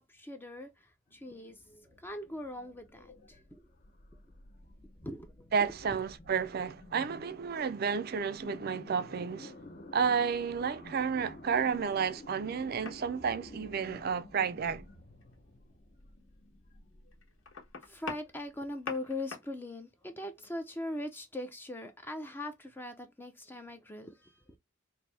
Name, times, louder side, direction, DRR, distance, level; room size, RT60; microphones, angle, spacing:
voice 1, 0.0-3.7 5.0-5.5 5.9-6.0 17.8-24.6, left 1 dB, 10° left, 0.4 m, -41 dB
sound 1, 1.1-18.9, left 1 dB, 40° left, 0.8 m, -53 dB
voice 2, 5.5-9.5 9.9-14.9, right 6 dB, 50° right, 0.4 m, -31 dB
sound 2, 12.6-13.1 15.2-15.4 16.0-16.1 17.1-19.6 20.9-21.0, left 4 dB, 80° left, 1.3 m, -43 dB
4.0 x 2.6 x 3.2 m
head